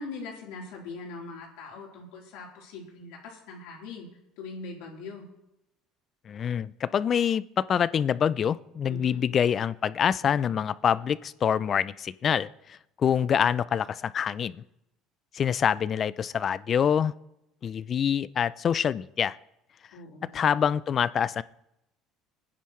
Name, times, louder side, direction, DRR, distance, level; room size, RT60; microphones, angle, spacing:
voice 1, 0.0-4.1 4.4-5.3 8.8-9.2 19.9-20.4, left 3 dB, 80° left, -2 dB, 3.8 m, -41 dB
voice 2, 6.3-14.6 15.3-17.1 17.6-19.4 20.3-21.4, left 8 dB, 40° left, 18 dB, 0.4 m, -26 dB
20.5 x 10.0 x 3.2 m, 0.85 s
cardioid pair, 115°, 0 cm